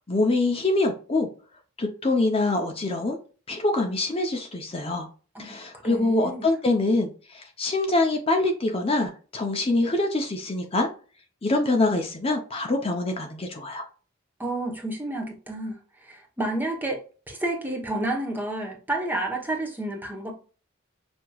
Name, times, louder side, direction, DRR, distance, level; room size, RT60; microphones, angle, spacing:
voice 1, 0.1-1.3 1.8-3.2 3.5-5.1 5.4-10.9 11.4-13.8, left 2 dB, 30° left, 0.6 m, -25 dB
voice 2, 5.8-6.4 14.4-20.3, right 1 dB, 10° right, 0.9 m, -30 dB
6.1 x 2.9 x 2.3 m
head